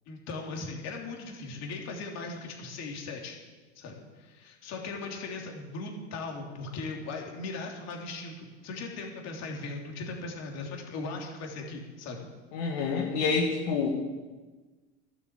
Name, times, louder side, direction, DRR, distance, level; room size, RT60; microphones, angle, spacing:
voice 1, 0.1-3.4 3.7-12.2, left 3 dB, 50° left, 1 dB, 3.2 m, -38 dB
voice 2, 12.5-13.9, left 4 dB, 75° left, -1 dB, 1.9 m, -27 dB
12.0 x 8.3 x 8.2 m, 1.3 s
hypercardioid pair, 90°, 33 cm